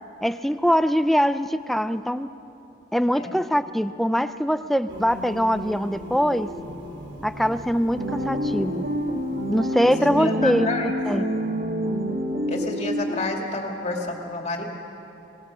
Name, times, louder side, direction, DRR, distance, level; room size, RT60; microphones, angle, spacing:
voice 1, 0.2-2.3 2.9-6.5 7.2-8.8 9.5-10.7 11.1-11.3, equal, ahead, 11 dB, 0.5 m, -23 dB
Singing, 4.9-10.3, equal, 75° right, 2.8 m, -39 dB
sound 1, 8.0-13.1, equal, 55° right, 2.3 m, -27 dB
voice 2, 10.0-10.9 12.5-14.6, left 2 dB, 35° left, 1 dB, 2.5 m, -30 dB
26.5 x 20.0 x 6.3 m, 2.9 s
head